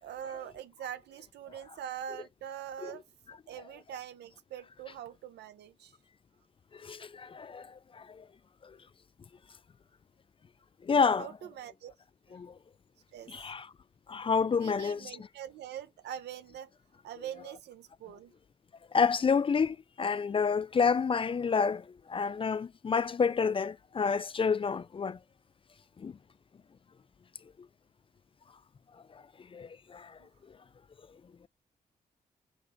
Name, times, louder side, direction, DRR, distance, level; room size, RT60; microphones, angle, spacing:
voice 1, 0.0-3.0 3.5-5.9 11.2-11.9 12.3-12.4 13.1-13.3 14.5-16.7 17.0-18.3 30.2-30.3, right 10 dB, 80° right, 0.6 m, -43 dB
voice 2, 6.8-8.2 8.6-8.7 10.8-11.3 12.3-12.5 13.3-13.7 14.1-15.3 18.9-25.2 26.0-26.1 29.5-30.2, left 5 dB, 30° left, 0.3 m, -29 dB
5.2 x 2.1 x 4.0 m
supercardioid pair, 50°, 17 cm